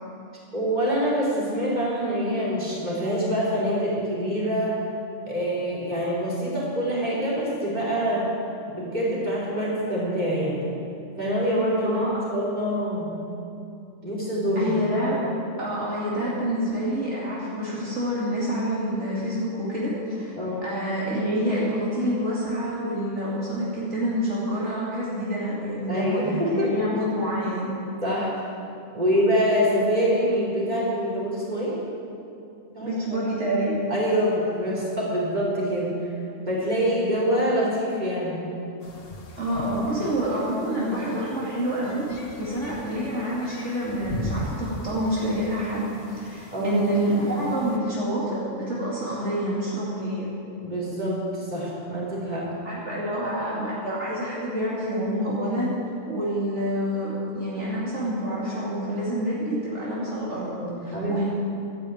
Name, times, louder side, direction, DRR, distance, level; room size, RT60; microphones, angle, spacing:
voice 1, 0.5-4.7 5.3-8.3 8.7-10.6 11.2-13.1 14.0-14.7 20.4-20.7 25.9-26.7 28.0-28.3 28.9-31.8 32.7-33.2 33.9-35.9 36.5-38.4 46.5-46.8 50.6-52.5 60.6-61.2, equal, 35° right, -7 dB, 4.4 m, -25 dB
voice 2, 14.6-15.3 15.6-20.3 20.6-27.7 32.8-33.9 39.4-50.3 52.6-55.7 56.1-60.5 60.8-61.3, equal, 70° right, -7 dB, 2.9 m, -27 dB
sound 1, 38.8-47.8, left 1 dB, 55° left, 1.4 m, -39 dB
12.5 x 10.5 x 8.6 m, 2.6 s
omnidirectional pair, 1.2 m